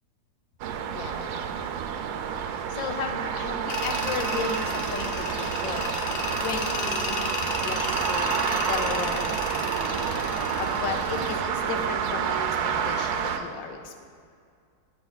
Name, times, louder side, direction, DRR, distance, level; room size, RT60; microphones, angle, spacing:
sound 1, 0.6-13.4, right 7 dB, 80° right, 1.3 m, -29 dB
voice 1, 0.9-1.6 2.5-9.3 10.5-14.0, left 5 dB, 85° left, 5 dB, 1.6 m, -35 dB
Truck, 2.7-11.7, right 2 dB, 60° right, 2.0 m, -47 dB
Tools, 3.7-11.4, left 4 dB, 70° left, 0.5 m, -34 dB
10.0 x 8.7 x 4.0 m, 2.3 s
omnidirectional pair, 2.0 m